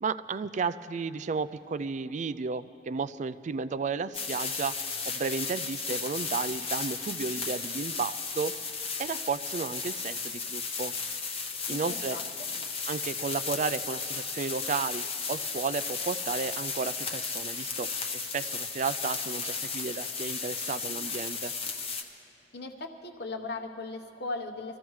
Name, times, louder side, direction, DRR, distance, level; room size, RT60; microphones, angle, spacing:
voice 1, 0.0-4.7 5.1-8.6 9.0-10.9 11.7-12.2 12.9-21.8, right 5 dB, 40° right, 14 dB, 0.3 m, -33 dB
sound 1, 4.1-22.0, left 5 dB, 30° left, 1.0 m, -34 dB
voice 2, 11.7-12.5 22.5-24.8, left 3 dB, 60° left, 5 dB, 1.0 m, -38 dB
24.5 x 15.0 x 3.2 m, 2.8 s
head